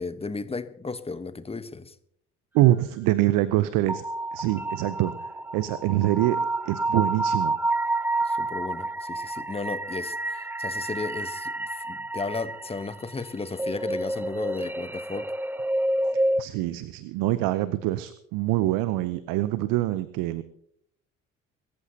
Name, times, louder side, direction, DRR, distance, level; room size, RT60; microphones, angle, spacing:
voice 1, 0.0-1.9 8.2-15.3, left 3 dB, 15° left, 1.1 m, -34 dB
voice 2, 2.5-4.0 4.3-5.1 5.5-7.6 16.4-20.4, right 15 dB, 65° right, 0.8 m, -25 dB
sound 1, 3.9-16.4, right 2 dB, 5° right, 0.5 m, -29 dB
25.0 x 14.0 x 2.9 m
hypercardioid pair, 55°, 36 cm